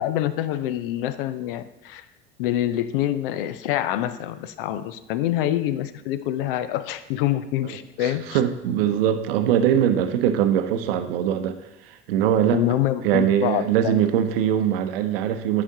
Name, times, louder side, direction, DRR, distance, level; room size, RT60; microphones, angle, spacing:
voice 1, 0.0-2.0 2.4-8.4 12.5-14.0, left 12 dB, 55° left, 14 dB, 0.5 m, -26 dB
voice 2, 8.0-11.6 12.1-12.6 13.0-15.6, right 10 dB, 60° right, 9 dB, 0.7 m, -22 dB
11.5 x 5.0 x 2.8 m, 0.95 s
figure-of-eight pair, 75°, 32 cm